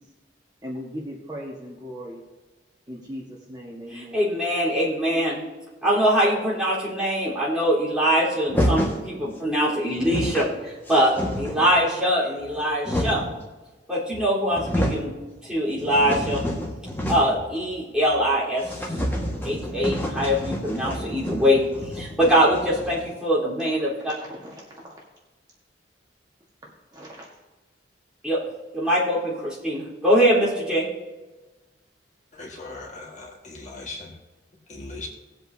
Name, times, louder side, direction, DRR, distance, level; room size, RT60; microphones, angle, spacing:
voice 1, 0.6-2.2 2.9-4.1 24.1-25.0 26.6-27.3, equal, 20° right, -3 dB, 1.5 m, -38 dB
voice 2, 3.9-5.4 5.8-13.2 13.9-15.1 15.4-16.4 17.1-18.7 19.4-24.1 28.2-28.4 28.7-30.9, equal, 5° right, -8 dB, 3.8 m, -23 dB
sound 1, 8.5-9.0 9.7-9.8 9.9-10.5 10.9-11.7 12.4-13.4 14.1-14.2 14.5-15.1 15.5-17.5 17.7-17.8 18.1-18.2 18.6-23.1, equal, 10° left, 1.6 m, -28 dB
voice 3, 32.3-34.2 34.7-35.1, left 2 dB, 40° left, -2 dB, 1.7 m, -38 dB
19.0 x 7.9 x 2.8 m, 1.2 s
head